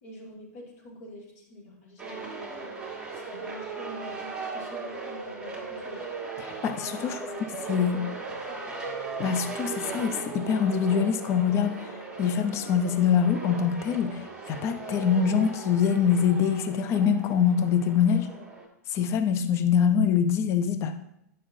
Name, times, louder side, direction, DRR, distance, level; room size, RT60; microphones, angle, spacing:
voice 1, 0.0-6.1 7.0-7.5 7.8-8.1 8.5-8.6 18.1-18.4, left 1 dB, 50° left, -3 dB, 2.2 m, -45 dB
sound 1, 2.0-18.7, right 4 dB, 10° right, 1.3 m, -38 dB
voice 2, 6.4-7.2 7.7-8.0 9.2-18.3 18.9-21.0, left 7 dB, 30° left, 9 dB, 0.5 m, -24 dB
8.5 x 5.5 x 2.6 m, 0.82 s
figure-of-eight pair, 105°, 9 cm